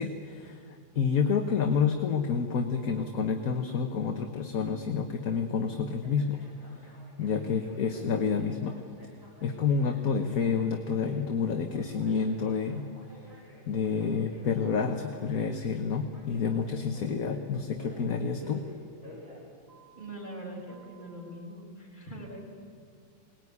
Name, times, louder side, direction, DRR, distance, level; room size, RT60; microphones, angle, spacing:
voice 1, 0.0-6.9 7.2-8.7 9.4-12.9 13.7-18.6, left 6 dB, 50° left, 5 dB, 1.4 m, -29 dB
Telephone, 2.7-3.2 6.0-20.2 20.7-21.2, equal, 40° right, 6.1 m, -52 dB
voice 2, 19.9-22.4, right 1 dB, 20° left, -3 dB, 6.3 m, -42 dB
23.0 x 19.5 x 9.6 m, 2.3 s
omnidirectional pair, 2.2 m